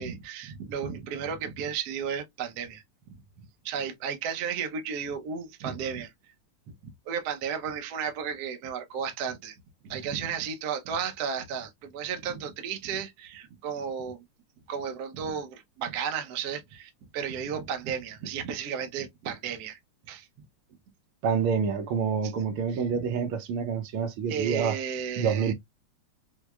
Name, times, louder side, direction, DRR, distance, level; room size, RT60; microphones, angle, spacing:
voice 1, 0.0-3.2 3.6-6.1 6.7-9.6 9.8-14.2 14.7-19.8 20.1-20.3 22.7-22.8 24.3-25.5, right 7 dB, 65° right, 1.0 m, -34 dB
voice 2, 21.2-24.8 25.2-25.5, right 6 dB, 80° right, 1.6 m, -27 dB
4.6 x 2.1 x 2.2 m
omnidirectional pair, 2.4 m